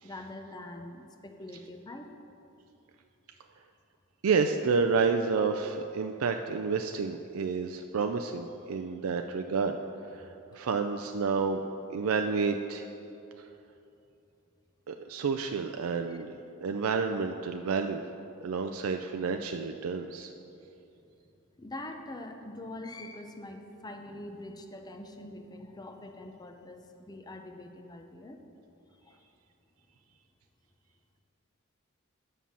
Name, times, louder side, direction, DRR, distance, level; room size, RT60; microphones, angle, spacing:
voice 1, 0.0-2.1 16.1-16.2 21.6-28.4 29.0-29.2, left 1 dB, 20° left, 5 dB, 0.6 m, -44 dB
voice 2, 4.2-9.8 10.0-11.6 11.9-12.9 14.9-18.0 18.4-20.3, right 5 dB, 80° right, 6 dB, 0.4 m, -30 dB
9.4 x 5.6 x 7.2 m, 2.8 s
head